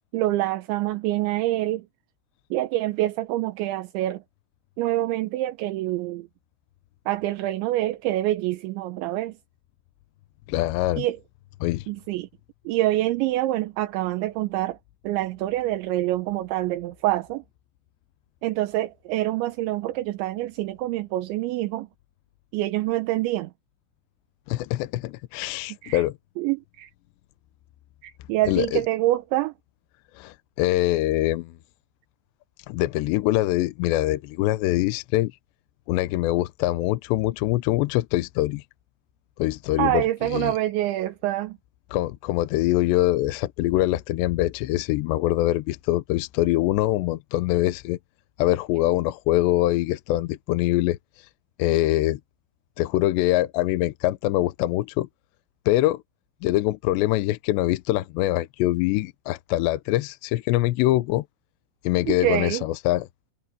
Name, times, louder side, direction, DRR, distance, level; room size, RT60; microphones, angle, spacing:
voice 1, 0.1-1.9 2.5-4.2 4.8-6.3 7.1-9.4 11.0-11.2 11.9-12.3 12.7-14.8 15.0-17.4 18.4-21.9 22.5-23.5 25.8-26.0 26.4-26.9 28.0-29.5 39.8-41.6 62.1-62.6, right 15 dB, 80° right, 3.3 m, -26 dB
voice 2, 10.5-11.1 11.6-11.8 24.5-26.1 28.5-28.8 30.2-31.5 32.7-35.3 35.9-38.6 39.4-40.0 40.3-40.5 41.9-48.0 48.4-51.0 51.6-52.2 52.8-55.1 55.7-56.0 56.4-61.2 61.8-63.1, left 16 dB, 80° left, 2.8 m, -23 dB
omnidirectional pair, 5.3 m